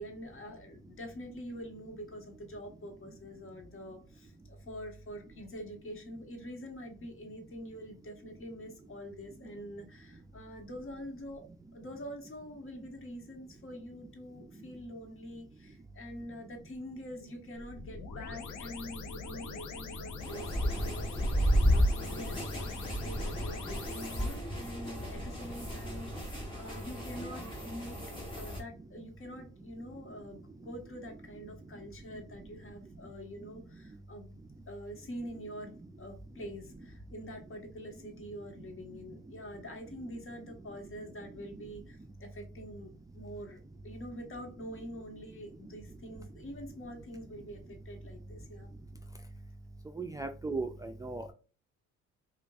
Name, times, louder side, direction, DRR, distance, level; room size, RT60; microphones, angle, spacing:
voice 1, 0.0-28.0 28.4-34.4 34.7-48.7, equal, 45° left, 3 dB, 1.3 m, -45 dB
sound 1, 17.6-24.4, left 4 dB, 80° left, 0.9 m, -43 dB
sound 2, 20.2-28.6, equal, 15° left, 1.8 m, -32 dB
voice 2, 50.0-51.2, right 3 dB, 10° right, 5 dB, 0.3 m, -36 dB
5.1 x 2.4 x 2.4 m, 0.35 s
cardioid pair, 90°, 30 cm